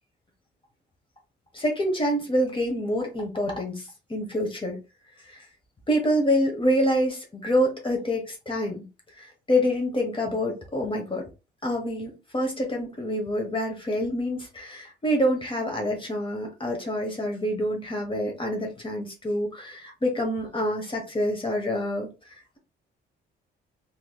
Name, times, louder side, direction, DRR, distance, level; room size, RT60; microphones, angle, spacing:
voice 1, 1.5-4.8 5.2-5.5 5.9-8.9 9.1-11.2 11.6-22.6, equal, 25° left, 2 dB, 1.1 m, -27 dB
3.1 x 2.9 x 2.3 m, 0.28 s
cardioid pair, 90°, 20 cm